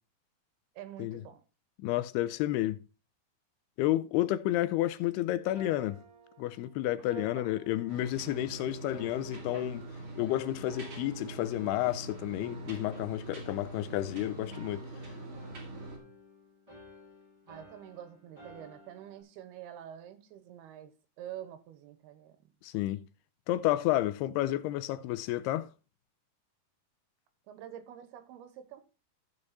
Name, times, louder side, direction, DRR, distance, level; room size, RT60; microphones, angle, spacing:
voice 1, 0.8-1.4 7.0-7.5 17.5-20.9 21.2-22.5 27.5-28.8, right 10 dB, 85° right, 3.0 m, -47 dB
voice 2, 1.8-2.8 3.8-6.0 6.4-9.9 10.2-14.9 22.6-23.0 23.5-25.7, left 15 dB, 90° left, 2.7 m, -31 dB
sound 1, 5.5-8.5 8.9-10.3 10.7-12.1 12.4-14.1 14.5-19.2, right 2 dB, 10° right, 2.5 m, -54 dB
sound 2, 7.9-16.0, right 2 dB, 40° right, 2.7 m, -43 dB
15.0 x 5.0 x 4.1 m
omnidirectional pair, 4.5 m